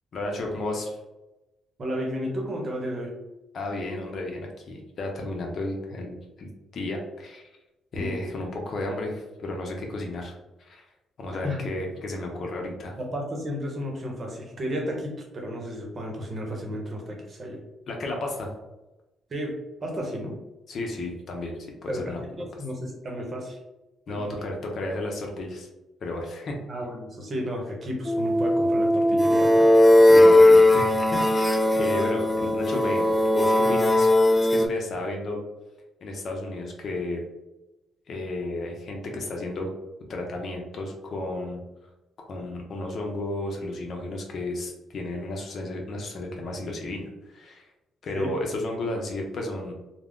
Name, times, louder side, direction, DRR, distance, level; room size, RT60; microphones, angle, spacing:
voice 1, 0.1-1.0 3.5-7.5 7.9-10.3 10.6-10.8 11.2-12.9 17.9-18.5 20.7-21.5 21.8-22.4 24.1-25.7 26.0-26.5 30.0-34.1 34.5-35.4 36.0-37.2 38.1-39.7 40.1-41.6 42.2-47.7 48.0-49.7, left 2 dB, 60° left, 1 dB, 0.6 m, -33 dB
voice 2, 1.8-3.1 7.9-8.2 11.4-11.7 13.0-17.6 19.3-19.5 19.8-20.4 21.9-23.6 24.1-24.4 26.7-29.7 48.1-48.3, equal, 45° right, 0 dB, 0.8 m, -33 dB
sound 1, 28.0-34.7, left 1 dB, 20° left, 0.3 m, -18 dB
2.3 x 2.1 x 3.5 m, 0.99 s
cardioid pair, 80°, 0 cm